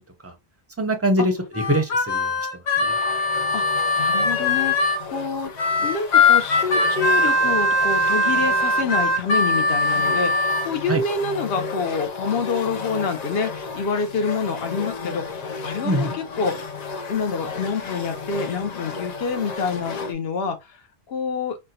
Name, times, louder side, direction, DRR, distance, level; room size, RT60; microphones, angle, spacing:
voice 1, 0.8-2.3 2.8-2.9 10.9-11.0 15.8-16.1, right 1 dB, 15° right, 0.5 m, -23 dB
Harmonica, 1.5-5.0 5.6-10.7, left 2 dB, 90° left, 1.1 m, -21 dB
sound 1, 2.8-20.1, left 5 dB, 50° left, 0.6 m, -33 dB
voice 2, 4.0-4.7 5.1-5.5 5.8-16.7 17.1-20.8 21.1-21.6, left 5 dB, 70° left, 0.9 m, -27 dB
4.3 x 2.1 x 2.7 m
omnidirectional pair, 1.1 m